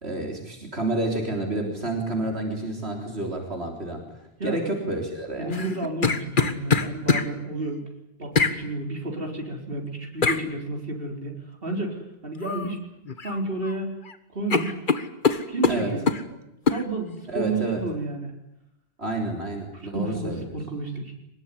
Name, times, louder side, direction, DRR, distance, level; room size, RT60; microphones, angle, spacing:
voice 1, 0.0-4.0 4.4-5.6 15.7-15.9 17.3-17.8 19.0-20.4, right 2 dB, 80° right, 2 dB, 4.1 m, -29 dB
voice 2, 4.4-4.7 5.4-7.8 8.2-12.8 13.2-14.0 14.3-14.8 15.5-16.4 16.7-18.3 19.7-21.1, right 2 dB, 60° right, 2 dB, 4.6 m, -31 dB
sound 1, 5.5-7.3 8.3-8.6 10.2-10.4 12.4-12.7 13.1-13.7 14.0-14.2 14.5-16.2 16.7-16.8, left 4 dB, 50° left, 1.6 m, -23 dB
23.5 x 21.0 x 9.9 m, 0.84 s
omnidirectional pair, 1.1 m